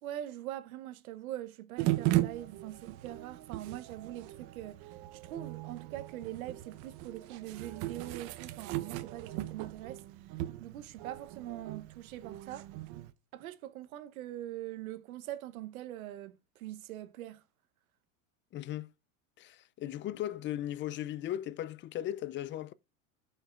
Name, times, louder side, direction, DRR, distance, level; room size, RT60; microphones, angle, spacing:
voice 1, 0.0-10.0 10.6-12.7 13.3-17.4, right 13 dB, 90° right, 1.0 m, -43 dB
sound 1, 1.8-13.1, right 16 dB, 60° right, 0.8 m, -37 dB
voice 2, 18.5-18.9 19.4-22.7, left 12 dB, 30° left, 0.4 m, -37 dB
14.5 x 5.6 x 2.4 m
supercardioid pair, 105°, 41 cm